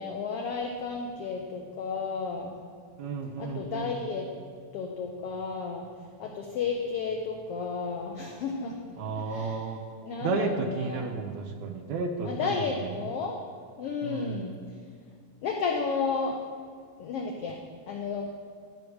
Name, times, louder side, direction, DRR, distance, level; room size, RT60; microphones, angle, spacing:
voice 1, 0.0-2.5 3.4-4.3 4.7-5.9 6.2-8.8 9.3-9.6 10.0-11.0 12.2-13.4 13.8-14.6 15.4-16.4 17.0-17.6 17.9-18.2, left 5 dB, 90° left, 2 dB, 1.3 m, -32 dB
voice 2, 3.0-4.0 9.0-9.8 10.2-13.0 14.0-14.4, right 4 dB, 75° right, 5 dB, 1.9 m, -32 dB
12.0 x 6.4 x 4.7 m, 2.1 s
omnidirectional pair, 3.5 m